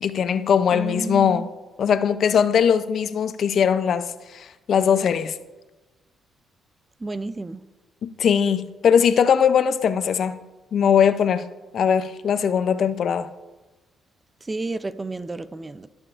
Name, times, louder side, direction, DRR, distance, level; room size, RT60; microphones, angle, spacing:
voice 1, 0.0-1.5 1.8-4.1 4.3-5.4 8.0-10.4 10.7-11.4 11.7-13.3, left 7 dB, 60° left, 0.4 m, -20 dB
voice 2, 0.7-1.5 7.0-7.6 14.4-15.9, right 2 dB, 20° right, 0.4 m, -31 dB
16.5 x 7.0 x 2.4 m
cardioid pair, 90°, 0 cm